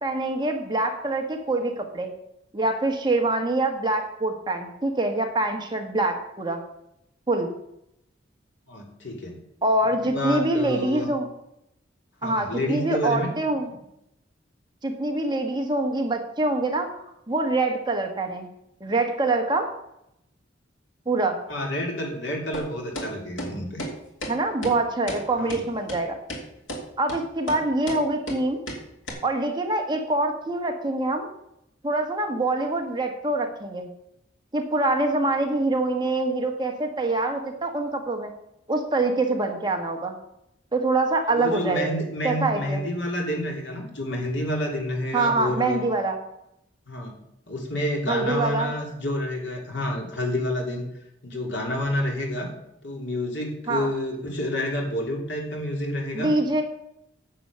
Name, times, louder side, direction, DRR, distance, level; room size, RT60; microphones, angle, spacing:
voice 1, 0.0-2.1 2.5-6.6 7.3-7.5 9.6-11.3 12.2-13.7 14.8-18.5 18.8-19.7 21.0-21.4 24.3-26.1 27.0-28.6 29.2-31.3 31.8-33.9 34.5-38.3 38.7-40.1 40.7-42.8 45.1-46.2 48.1-48.7 53.7-53.9 56.1-56.6, right 2 dB, 25° right, 3 dB, 1.5 m, -25 dB
voice 2, 8.7-9.4 10.0-11.1 12.2-13.3 21.5-23.8 25.4-25.6 41.3-45.8 46.9-47.1 47.5-50.9 51.2-52.5 52.8-56.3, left 1 dB, 70° left, 1 dB, 3.2 m, -29 dB
sound 1, 22.5-22.7 23.0-23.1 23.4-23.5 23.8-23.9 24.2-24.3 24.6-24.8 25.1-25.2 25.5-25.6 25.9-26.0 26.3-26.4 26.7-26.8 27.1-27.2 27.5-27.6 27.9-28.0 28.3-28.4 28.7-28.8 29.1-29.2, equal, 85° left, 3.0 m, -33 dB
10.0 x 7.9 x 6.9 m, 0.79 s
head